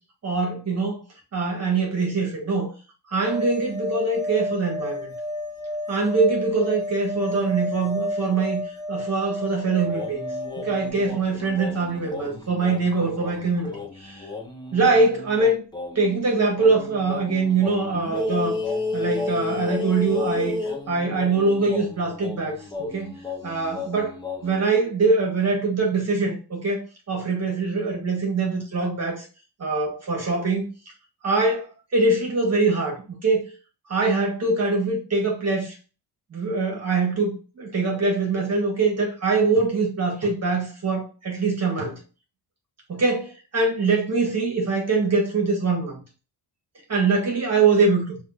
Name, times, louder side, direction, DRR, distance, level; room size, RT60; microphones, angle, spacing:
voice 1, 0.2-1.0 1.3-2.7 3.1-5.1 5.9-8.6 8.9-10.3 10.6-14.3 14.7-15.6 16.0-18.6 18.9-23.1 23.4-24.2 24.4-29.3 29.6-30.7 31.2-33.4 33.9-35.8 36.3-42.0 42.9-46.0 46.9-48.2, right 3 dB, 35° right, 1.6 m, -23 dB
sound 1, 3.2-10.9, left 1 dB, 10° right, 2.0 m, -31 dB
sound 2, 9.8-16.2 16.6-24.6, left 3 dB, 10° left, 0.8 m, -33 dB
5.3 x 3.2 x 2.7 m
cardioid pair, 140°, 44 cm